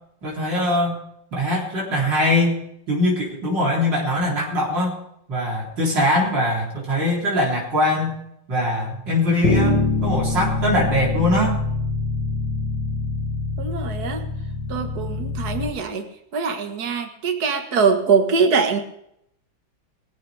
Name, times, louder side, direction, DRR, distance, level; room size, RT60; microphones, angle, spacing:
voice 1, 0.2-1.0 1.3-5.0 5.3-8.1 8.5-11.6, left 1 dB, 75° right, -3 dB, 4.5 m, -22 dB
Bass guitar, 9.4-15.7, left 3 dB, 70° left, 2.6 m, -24 dB
voice 2, 13.6-14.3 14.7-16.0 16.3-18.8, right 5 dB, 55° right, 5 dB, 2.1 m, -22 dB
20.5 x 15.5 x 3.5 m, 0.75 s
omnidirectional pair, 2.0 m